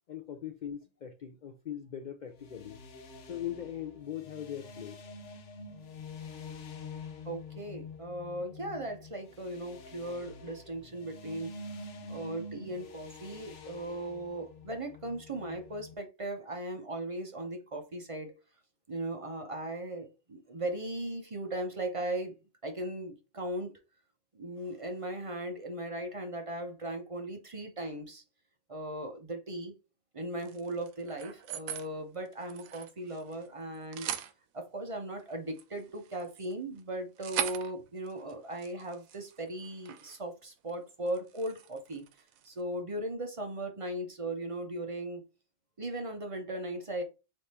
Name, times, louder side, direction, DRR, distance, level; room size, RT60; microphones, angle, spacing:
voice 1, 0.1-2.8 3.3-5.0, left 10 dB, 80° left, 0.4 m, -40 dB
sound 1, 2.3-15.9, left 3 dB, 65° left, 1.1 m, -47 dB
voice 2, 7.3-11.5 12.1-18.4 18.9-22.3 22.6-23.7 24.3-28.2 28.7-29.7 30.1-34.1 34.5-42.0 42.4-45.2 45.8-47.0, right 1 dB, 35° right, 0.6 m, -38 dB
sound 2, 30.4-31.9 32.3-33.5 33.7-34.3 35.2-40.2 40.5-40.7 41.1-42.6, right 10 dB, 90° right, 1.0 m, -41 dB
3.5 x 3.2 x 4.1 m
omnidirectional pair, 1.4 m